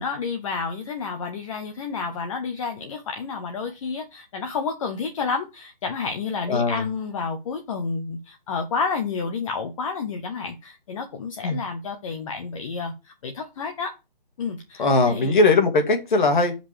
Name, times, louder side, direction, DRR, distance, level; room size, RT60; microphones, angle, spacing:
voice 1, 0.0-13.9 14.4-15.4, left 5 dB, 35° left, 4 dB, 1.1 m, -30 dB
voice 2, 6.5-6.8 11.4-11.6 14.8-16.6, left 3 dB, 55° left, 6 dB, 2.2 m, -19 dB
5.3 x 5.1 x 5.1 m, 0.26 s
hypercardioid pair, 155°, 29 cm